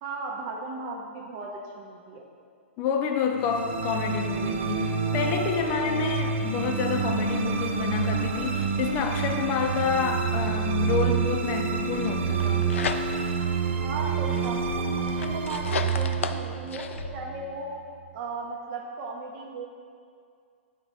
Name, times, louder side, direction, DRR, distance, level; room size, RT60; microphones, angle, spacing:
voice 1, 0.0-2.2 13.8-17.7 18.1-19.7, right 3 dB, 40° right, -1 dB, 0.8 m, -36 dB
voice 2, 2.8-12.7, left 6 dB, 30° left, 4 dB, 0.5 m, -28 dB
sound 1, 3.4-17.8, right 5 dB, 65° right, 0.5 m, -28 dB
sound 2, 12.2-13.4 13.9-17.1, left 6 dB, 80° left, 0.3 m, -34 dB
6.0 x 3.0 x 5.5 m, 2.2 s
hypercardioid pair, 130°, 7 cm